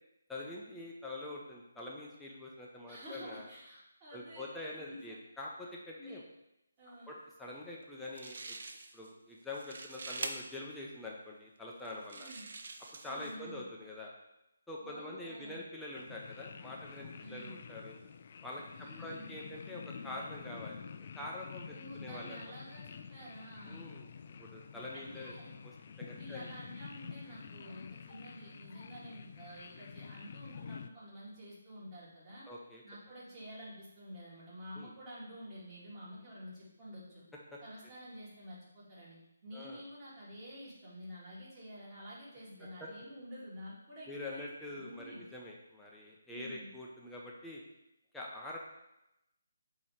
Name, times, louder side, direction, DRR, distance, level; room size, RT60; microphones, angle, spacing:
voice 1, 0.3-3.5 4.1-6.2 6.9-8.6 8.9-12.3 13.0-14.1 14.7-18.0 18.4-20.8 21.2-21.7 22.0-22.5 23.7-25.3 25.6-25.7 26.0-26.5 32.5-32.8 34.8-34.9 37.5-37.6 39.5-39.8 42.8-42.9 44.1-47.6 48.1-48.6, left 2 dB, 5° left, -4 dB, 0.6 m, -45 dB
voice 2, 2.9-5.2 5.9-6.2 6.8-7.1 12.1-12.5 13.0-13.6 14.8-15.6 17.2-17.6 18.7-19.3 21.6-23.8 24.9-25.5 26.1-32.5 32.8-37.2 37.6-39.2 39.4-44.5 44.8-45.2 46.3-46.7, equal, 20° right, -8 dB, 2.3 m, -49 dB
sound 1, 7.8-7.9 8.1-9.1 9.4-10.3 11.1-11.2 11.8-13.4, right 3 dB, 60° right, 0.6 m, -44 dB
sound 2, 15.9-30.9, left 6 dB, 45° left, 0.3 m, -49 dB
7.0 x 2.9 x 5.0 m, 0.89 s
hypercardioid pair, 160°, 0 cm